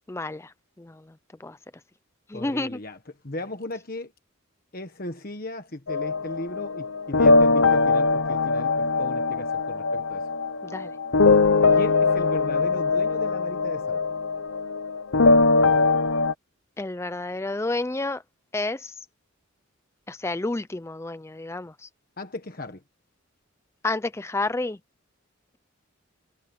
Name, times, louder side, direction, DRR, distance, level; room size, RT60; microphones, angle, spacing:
voice 1, 0.1-1.0 1.4-1.6 2.3-2.8 10.6-10.9 16.8-18.2 18.5-18.9 20.1-21.9 23.8-24.8, left 2 dB, 10° left, 0.4 m, -30 dB
voice 2, 2.3-3.0 3.2-4.1 4.7-10.3 11.7-14.0 22.2-22.8, left 2 dB, 40° left, 1.4 m, -36 dB
sound 1, 5.9-16.3, left 3 dB, 65° left, 0.8 m, -21 dB
head